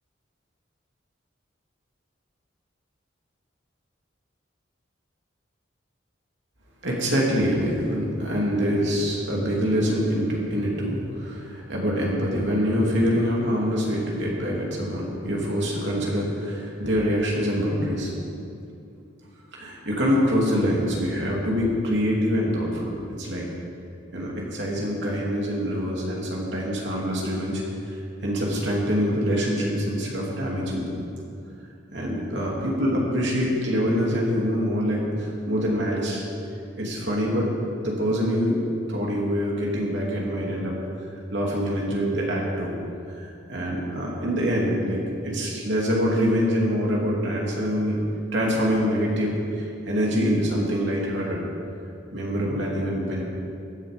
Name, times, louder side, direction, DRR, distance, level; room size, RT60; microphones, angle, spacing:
voice 1, 6.8-18.1 19.5-23.5 24.1-28.0 28.2-30.9 31.9-36.2 36.8-37.5 37.8-38.6 38.9-40.7 41.3-42.7 43.2-48.0 48.3-51.4 52.1-53.2, equal, 65° right, -3 dB, 2.8 m, -25 dB
15.0 x 11.0 x 5.2 m, 2.6 s
head